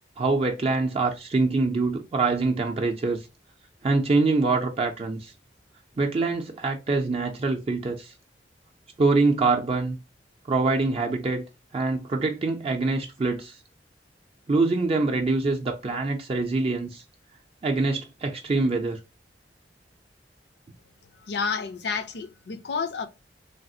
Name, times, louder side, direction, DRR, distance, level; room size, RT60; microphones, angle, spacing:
voice 1, 0.2-3.3 3.8-5.3 6.0-8.1 9.0-10.0 10.5-11.4 11.7-13.6 14.5-17.0 17.6-19.0, right 3 dB, 35° right, 0.4 m, -24 dB
voice 2, 21.3-23.1, left 5 dB, 70° left, 0.5 m, -30 dB
3.3 x 2.4 x 2.7 m
head